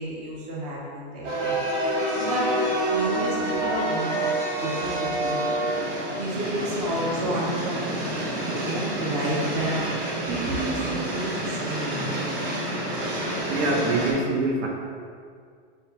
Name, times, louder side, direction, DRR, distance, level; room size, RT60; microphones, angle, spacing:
voice 1, 0.0-2.6 2.9-4.3 4.6-12.2, right 1 dB, 20° right, -4 dB, 0.5 m, -31 dB
sound 1, 1.2-14.1, right 1 dB, 55° right, 1.1 m, -28 dB
voice 2, 13.5-14.7, right 2 dB, 75° right, 0 dB, 0.8 m, -24 dB
5.3 x 2.3 x 2.8 m, 2.1 s
supercardioid pair, 155°, 34 cm